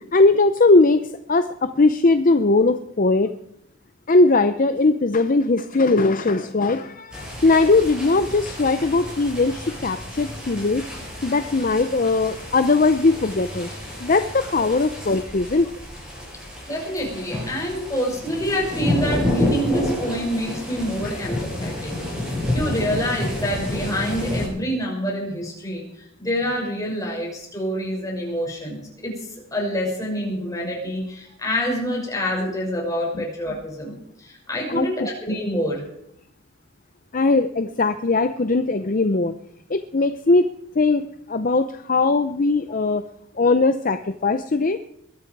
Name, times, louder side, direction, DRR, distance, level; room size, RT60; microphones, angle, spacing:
voice 1, 0.0-3.3 4.1-10.8 11.2-13.7 14.0-15.7 21.0-21.1 33.2-33.3 34.7-35.1 37.1-39.3 39.7-40.5 40.8-43.0 43.4-44.8, left 3 dB, 40° left, 10 dB, 0.6 m, -19 dB
sound 1, 7.1-24.5, left 1 dB, 5° right, 7.7 m, -29 dB
voice 2, 16.7-21.9 22.5-25.8 26.2-29.2 29.5-35.8, equal, 15° left, -3 dB, 6.2 m, -27 dB
21.5 x 13.0 x 4.7 m, 0.75 s
head